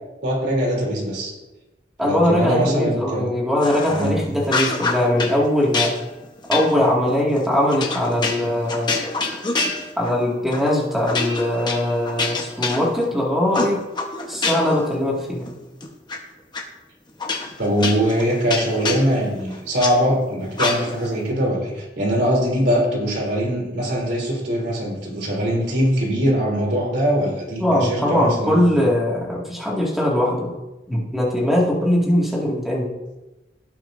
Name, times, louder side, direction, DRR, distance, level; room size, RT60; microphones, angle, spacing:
voice 1, 0.2-1.3 2.0-3.3 3.9-4.2 17.6-28.7, equal, 65° right, -3 dB, 3.2 m, -22 dB
voice 2, 2.0-5.9 6.5-9.0 10.0-13.8 14.3-15.5 27.6-30.5 30.9-32.9, left 1 dB, ahead, -4 dB, 2.0 m, -21 dB
sound 1, 3.6-4.1 4.4-5.4 5.7-10.2 10.5-10.7 11.1-13.2 13.5-14.8 15.2-16.2 16.5-16.6 17.2-19.9 20.5-21.1, left 3 dB, 25° left, 1.1 m, -26 dB
17.0 x 6.0 x 2.6 m, 1.0 s
head